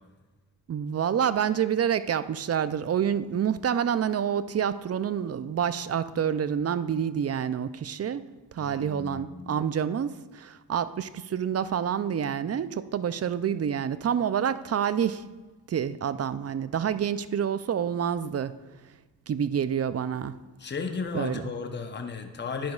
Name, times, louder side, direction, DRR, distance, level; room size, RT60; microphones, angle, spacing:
voice 1, 0.7-15.2 15.7-18.5 19.3-20.3 21.1-21.4, right 8 dB, 35° right, 14 dB, 0.5 m, -28 dB
voice 2, 8.6-9.6 20.6-22.7, left 5 dB, 25° left, 5 dB, 0.9 m, -34 dB
10.5 x 10.0 x 2.4 m, 1.2 s
supercardioid pair, 55°, 43 cm